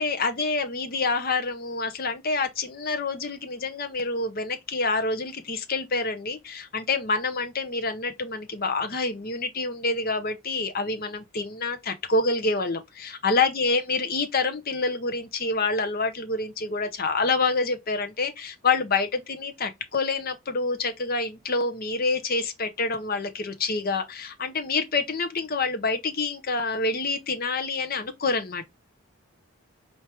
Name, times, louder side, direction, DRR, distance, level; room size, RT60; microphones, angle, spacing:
voice 1, 0.0-28.7, left 3 dB, 40° left, 0.7 m, -27 dB
4.4 x 3.0 x 3.3 m
head